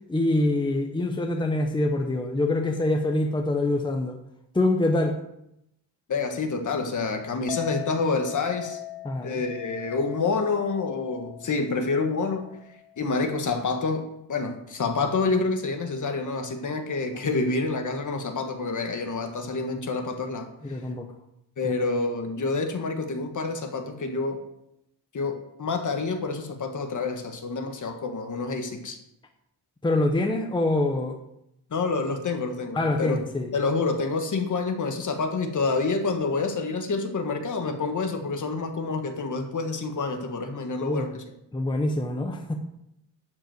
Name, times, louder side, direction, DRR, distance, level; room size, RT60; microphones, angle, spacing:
voice 1, 0.1-4.2 4.5-5.2 9.0-9.4 20.6-21.1 21.6-21.7 29.8-31.2 32.7-33.5 40.8-41.1 41.5-42.5, left 2 dB, 10° left, 4 dB, 0.8 m, -25 dB
voice 2, 6.1-8.8 9.2-12.5 13.0-20.5 21.6-24.4 25.1-29.0 31.7-33.2 33.5-41.2, left 3 dB, 45° left, 5 dB, 1.5 m, -28 dB
Chink clink, 7.5-13.8, left 13 dB, 90° left, 0.8 m, -41 dB
12.0 x 5.3 x 7.8 m, 0.82 s
wide cardioid pair, 165°, 42 cm